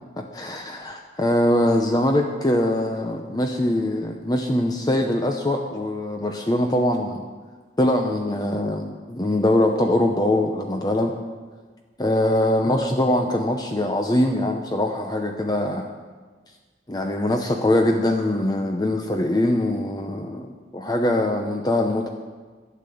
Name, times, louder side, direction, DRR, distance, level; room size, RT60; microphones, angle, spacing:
voice 1, 0.2-7.3 7.8-11.1 12.0-15.9 16.9-22.1, left 1 dB, 20° left, 4 dB, 0.6 m, -22 dB
12.0 x 9.5 x 7.0 m, 1.4 s
head